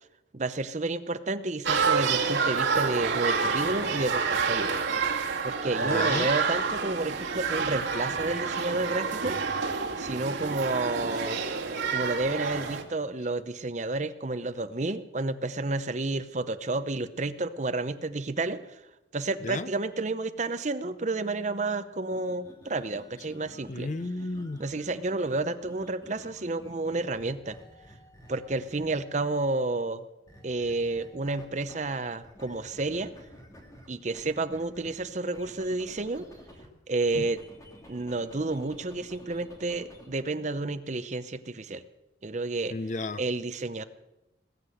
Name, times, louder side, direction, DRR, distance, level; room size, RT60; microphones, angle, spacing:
voice 1, 0.3-4.7 5.4-9.4 10.0-11.4 11.9-18.6 19.1-23.9 24.6-27.6 28.3-30.1 30.4-33.1 33.9-36.3 36.9-37.4 37.9-41.8 42.2-42.8 43.2-43.8, right 2 dB, 40° right, 12 dB, 0.7 m, -30 dB
sound 1, 1.6-12.8, right 5 dB, 80° right, 2.2 m, -28 dB
voice 2, 5.8-6.3 19.4-19.7 23.7-24.6 37.2-37.3 42.7-43.2, left 2 dB, 40° left, 15 dB, 0.5 m, -33 dB
sound 2, 22.0-29.2 30.3-31.9 32.2-36.7 37.0-40.1, equal, 15° left, 2.6 m, -51 dB
20.0 x 8.3 x 7.8 m, 0.98 s
head